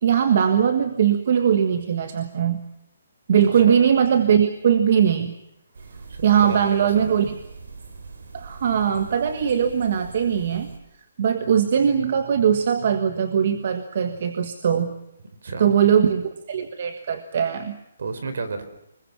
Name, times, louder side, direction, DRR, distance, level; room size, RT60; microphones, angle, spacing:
voice 1, 0.0-2.6 3.3-5.3 6.2-7.3 8.3-10.7 11.2-14.9 15.6-17.8, right 8 dB, 35° right, 8 dB, 1.5 m, -20 dB
sound 1, 5.8-10.8, right 4 dB, 80° right, 5.2 m, -41 dB
voice 2, 6.1-7.3 15.4-15.7 18.0-18.6, right 4 dB, 55° right, 10 dB, 4.1 m, -32 dB
25.5 x 21.5 x 7.2 m, 0.83 s
hypercardioid pair, 180°, 0 cm